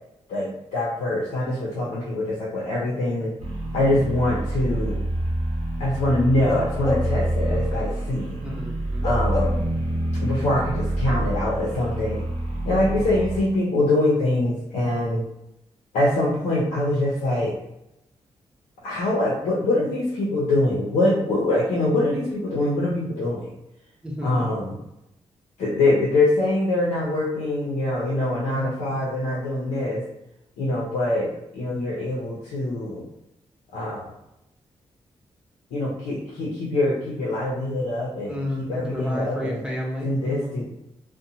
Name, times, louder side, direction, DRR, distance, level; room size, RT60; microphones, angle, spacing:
voice 1, 0.3-3.3 3.7-5.0 5.8-8.4 9.0-9.5 10.2-12.2 12.6-15.2 15.9-17.6 18.8-23.5 24.2-24.8 25.6-30.0 30.6-31.3 31.5-33.0 33.7-34.1 35.7-39.6 40.0-40.6, left 1 dB, 90° left, -5 dB, 0.6 m, -24 dB
sound 1, 3.4-13.4, right 1 dB, 70° right, 0.8 m, -27 dB
Bark / Livestock farm animals working animals, 6.4-7.3 7.7-7.9 9.0-9.8 10.2-10.3, left 3 dB, 30° left, 0.6 m, -29 dB
voice 2, 8.4-9.1 13.0-13.1 24.0-24.5 38.2-40.6, left 1 dB, 10° right, -3 dB, 1.0 m, -31 dB
2.6 x 2.1 x 2.7 m, 0.87 s
supercardioid pair, 50°, 12 cm